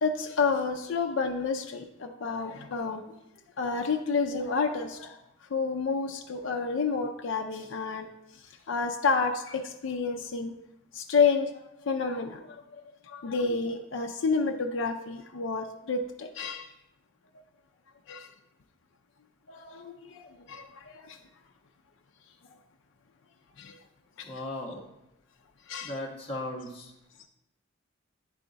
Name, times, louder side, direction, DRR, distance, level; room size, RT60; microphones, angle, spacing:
voice 1, 0.0-3.0 3.6-5.2 5.5-8.1 8.7-10.5 10.9-11.5 11.9-12.6 13.1-16.7 18.1-18.3 19.5-21.2 23.6-23.8 24.2-24.3 25.7-26.0, left 4 dB, 75° left, 4 dB, 0.4 m, -29 dB
voice 2, 24.2-24.8 25.8-26.9, left 1 dB, 30° left, -3 dB, 1.3 m, -36 dB
10.0 x 3.5 x 3.9 m, 0.87 s
head